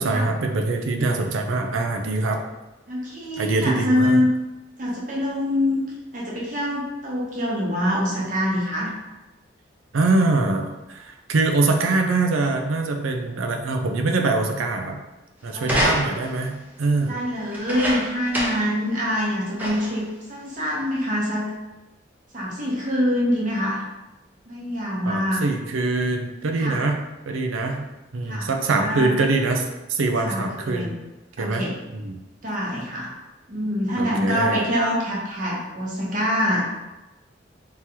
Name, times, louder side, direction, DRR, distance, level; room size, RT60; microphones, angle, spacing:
voice 1, 0.0-2.4 3.4-4.2 9.9-15.0 15.4-17.1 25.1-27.0 27.3-27.8 28.1-30.9 31.4-31.7 31.9-32.2 34.0-34.6, right 3 dB, 90° right, 4 dB, 0.5 m, -23 dB
voice 2, 2.9-4.3 4.8-5.8 6.1-8.9 15.5-15.9 17.1-21.5 22.3-23.8 24.5-25.4 26.6-26.8 28.3-29.1 30.2-31.0 31.4-31.7 32.4-33.1 33.5-36.7, equal, 40° right, -4 dB, 0.8 m, -25 dB
sound 1, 15.6-16.4 17.5-18.7 19.1-19.2 19.6-20.0 20.8-20.9, equal, 10° right, 0.5 m, -26 dB
3.6 x 2.9 x 2.9 m, 1.0 s
head